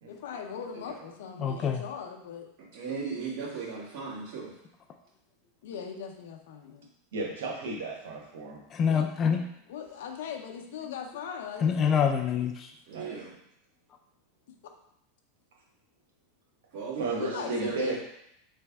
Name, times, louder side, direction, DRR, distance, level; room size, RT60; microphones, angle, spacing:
voice 1, 0.1-2.5 3.1-3.2 5.6-6.9 9.7-12.0 17.2-18.0, left 7 dB, 80° left, 4 dB, 0.6 m, -40 dB
voice 2, 1.4-1.8 8.7-9.5 10.8-11.0 11.6-12.8, left 7 dB, 30° left, 5 dB, 0.4 m, -26 dB
voice 3, 2.7-4.5 12.9-13.3 16.7-18.0, right 5 dB, 55° right, -8 dB, 1.7 m, -36 dB
voice 4, 7.1-8.6 12.9-13.2 17.0-18.0, right 3 dB, 85° right, 0 dB, 1.1 m, -34 dB
4.2 x 3.3 x 3.4 m, 0.77 s
supercardioid pair, 140°, 0 cm